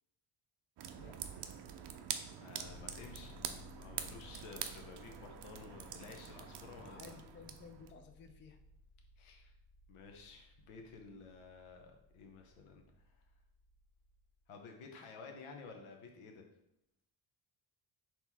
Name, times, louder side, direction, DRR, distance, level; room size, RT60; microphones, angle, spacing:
sound 1, 0.8-7.9, right 9 dB, 55° right, 0.6 m, -46 dB
voice 1, 2.2-3.4 3.8-7.3 9.2-9.5 9.9-13.2 14.5-16.4, left 4 dB, 80° left, 3 dB, 1.0 m, -53 dB
sound 2, 2.6-14.5, left 2 dB, 40° left, 0.9 m, -59 dB
voice 2, 6.8-8.6, left 5 dB, 25° left, 6 dB, 0.4 m, -55 dB
4.3 x 3.0 x 3.4 m, 0.79 s
cardioid pair, 80°, 49 cm